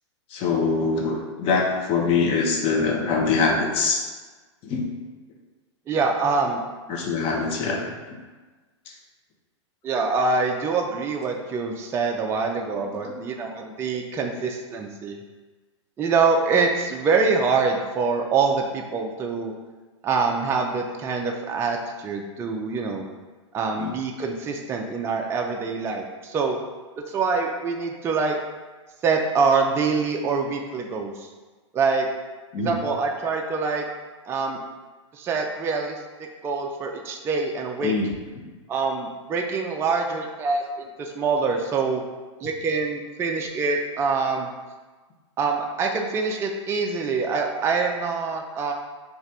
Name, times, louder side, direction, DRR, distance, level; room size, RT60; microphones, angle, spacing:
voice 1, 0.3-4.1 4.6-4.9 6.9-7.9 8.9-9.0 23.8-23.9 32.5-32.8 37.8-38.4, left 4 dB, 35° left, 0 dB, 0.7 m, -24 dB
voice 2, 5.9-6.6 9.8-15.2 16.0-19.5 20.0-23.1 23.5-26.6 27.1-28.4 29.0-31.3 31.7-32.1 32.6-33.9 34.3-34.6 35.1-36.0 36.4-37.9 38.7-42.0 42.4-44.5 45.4-48.7, right 4 dB, 15° right, 2 dB, 0.3 m, -25 dB
3.2 x 2.4 x 4.0 m, 1.3 s
hypercardioid pair, 115°, 16 cm